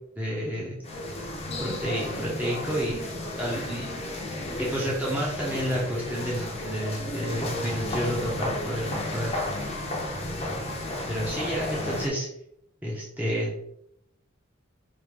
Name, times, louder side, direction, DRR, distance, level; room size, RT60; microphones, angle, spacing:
voice 1, 0.2-0.8 1.6-3.0 3.4-3.9 4.6-9.4 11.1-12.3 12.8-13.5, equal, 10° right, -6 dB, 0.8 m, -30 dB
sound 1, 0.8-12.1, left 1 dB, 30° left, 0.7 m, -33 dB
5.3 x 2.6 x 3.2 m, 0.74 s
head